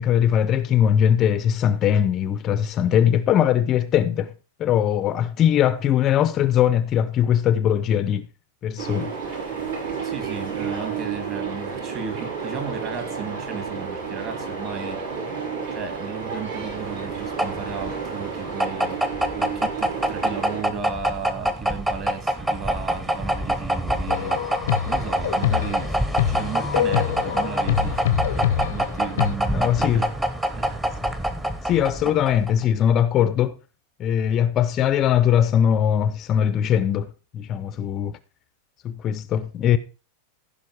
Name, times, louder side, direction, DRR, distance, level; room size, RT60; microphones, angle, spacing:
voice 1, 0.0-4.3 4.6-8.3 8.6-9.1 29.5-30.1 31.6-33.6 34.0-38.2 38.8-39.8, left 9 dB, 30° left, 0.6 m, -20 dB
sound 1, 8.8-20.6, right 5 dB, 70° right, 6.6 m, -31 dB
voice 2, 10.0-15.3 15.7-30.1 30.5-31.4 32.0-32.1, right 6 dB, 30° right, 2.4 m, -35 dB
sound 2, 16.6-32.6, equal, 10° right, 1.0 m, -26 dB
sound 3, 24.1-29.3, left 11 dB, 80° left, 0.7 m, -25 dB
15.0 x 5.3 x 4.8 m
supercardioid pair, 155°, 0 cm